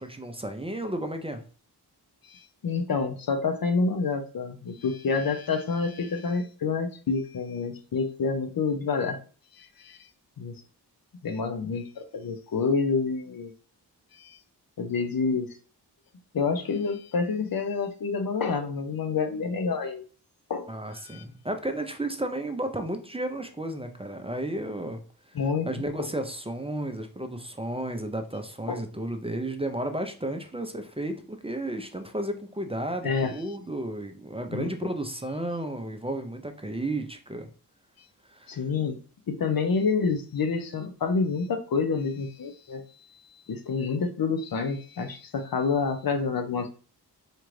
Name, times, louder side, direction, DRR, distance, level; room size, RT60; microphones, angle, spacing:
voice 1, 0.0-1.4 20.7-25.0 25.3-25.4 25.7-37.5 38.3-38.6, right 1 dB, 15° right, 0.5 m, -33 dB
voice 2, 2.3-9.2 9.6-10.1 10.4-10.5 11.2-13.5 14.1-14.4 14.8-15.5 16.3-20.0 20.5-20.7 21.0-21.2 25.3-25.7 28.7-28.8 33.0-33.3 34.5-34.7 38.5-39.0 39.3-42.8 43.5-46.7, left 5 dB, 55° left, 0.6 m, -28 dB
4.4 x 2.5 x 3.2 m
cardioid pair, 50°, 41 cm